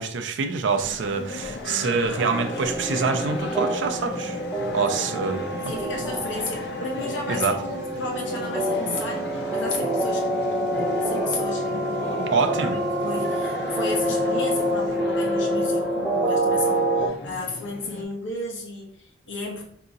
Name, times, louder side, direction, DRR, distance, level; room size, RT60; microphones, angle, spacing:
voice 1, 0.0-4.4 4.7-5.5 7.3-7.6 12.3-12.8, right 4 dB, 75° right, 7 dB, 0.4 m, -25 dB
sound 1, 0.8-18.0, left 3 dB, 60° left, 0.4 m, -37 dB
sound 2, 1.0-15.6 16.9-17.0 17.2-17.7, equal, 45° right, 1.0 m, -45 dB
sound 3, 2.2-17.1, right 1 dB, 5° right, 0.4 m, -27 dB
voice 2, 5.7-12.3 12.7-19.6, left 2 dB, 80° left, -1 dB, 1.0 m, -33 dB
3.8 x 2.8 x 2.5 m, 0.64 s
head